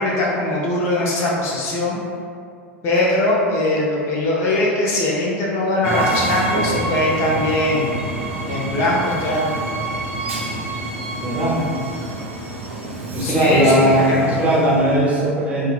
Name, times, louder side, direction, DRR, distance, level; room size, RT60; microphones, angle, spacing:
voice 1, 0.0-2.0 2.8-8.0 8.5-9.7 13.2-14.3, left 1 dB, 40° left, -4 dB, 0.5 m, -21 dB
Train, 5.8-15.0, right 2 dB, 75° right, 0.5 m, -27 dB
voice 2, 11.2-11.6 13.1-15.7, right 1 dB, 20° right, -6 dB, 0.8 m, -18 dB
2.8 x 2.4 x 2.3 m, 2.3 s
figure-of-eight pair, 80°, 7 cm